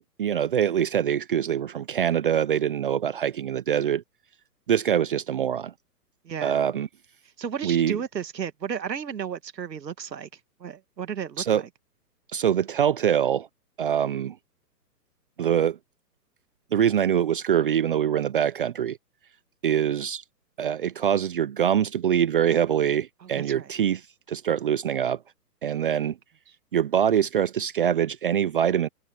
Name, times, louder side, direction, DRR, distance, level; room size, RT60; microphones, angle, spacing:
voice 1, 0.2-4.0 4.7-5.7 6.4-6.9 7.6-8.0 11.4-11.6 12.3-13.5 13.8-14.4 15.4-15.8 16.7-19.0 19.6-20.2 20.6-25.2 25.6-26.2 26.7-28.9, right 9 dB, 35° right, 0.6 m, -24 dB
voice 2, 6.2-6.6 7.4-10.3 10.6-11.6 23.2-23.7, right 7 dB, 85° right, 2.1 m, -33 dB
hypercardioid pair, 155°, 49 cm